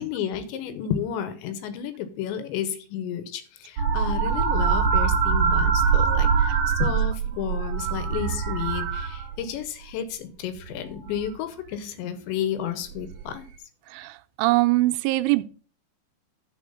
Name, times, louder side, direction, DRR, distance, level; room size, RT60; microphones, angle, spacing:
voice 1, 0.0-13.5, left 9 dB, 80° left, 3.1 m, -32 dB
sound 1, 3.8-9.6 10.8-11.3 13.0-13.2, right 6 dB, 55° right, 2.4 m, -23 dB
voice 2, 13.9-15.4, right 20 dB, 90° right, 3.0 m, -22 dB
12.0 x 4.3 x 5.5 m
omnidirectional pair, 5.4 m